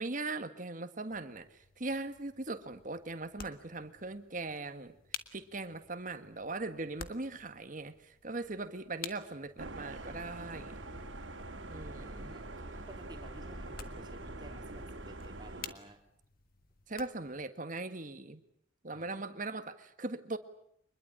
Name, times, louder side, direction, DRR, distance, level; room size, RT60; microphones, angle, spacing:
voice 1, 0.0-4.9 5.3-10.8 11.7-12.4 16.9-18.4 18.8-20.4, right 2 dB, 45° right, 10 dB, 1.7 m, -40 dB
sound 1, 1.1-17.5, left 7 dB, 50° left, 1.7 m, -52 dB
sound 2, 9.6-15.7, right 2 dB, 90° right, 2.8 m, -44 dB
voice 2, 12.0-16.0 18.9-19.2, right 1 dB, 25° right, 4 dB, 3.5 m, -54 dB
24.5 x 21.5 x 8.8 m, 0.70 s
head